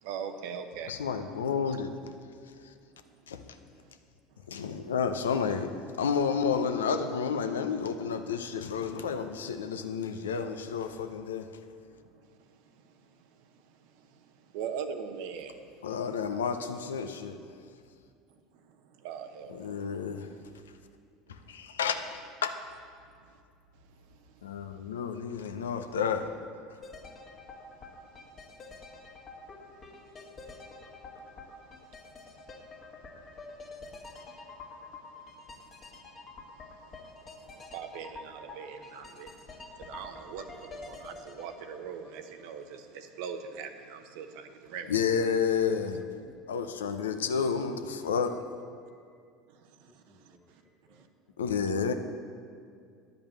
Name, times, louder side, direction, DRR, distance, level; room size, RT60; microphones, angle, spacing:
voice 1, 0.0-0.9 12.1-12.7 13.4-13.8 14.1-14.2 14.5-15.7 18.5-18.6 19.0-19.7 27.8-27.9 28.2-28.3 28.5-28.6 29.7-29.8 30.9-31.3 32.1-32.2 32.5-32.6 33.2-34.3 34.9-35.0 35.9-36.0 36.5-45.0 49.5-50.6 50.9-51.1, right 7 dB, 70° right, 7 dB, 0.8 m, -42 dB
voice 2, 0.9-1.9 3.3-3.4 4.5-5.7 6.0-11.5 15.8-17.4 19.5-20.3 21.3-22.5 24.4-26.3 44.9-46.0 46.5-48.4 51.4-51.9, left 6 dB, 85° left, 8 dB, 0.6 m, -30 dB
sound 1, 26.8-42.8 43.1-43.2, left 3 dB, 35° left, 1.7 m, -47 dB
voice 3, 45.9-46.5 48.8-49.2 49.8-51.4, left 1 dB, ahead, -2 dB, 0.9 m, -59 dB
10.5 x 5.2 x 7.4 m, 2.3 s
hypercardioid pair, 80°, 0 cm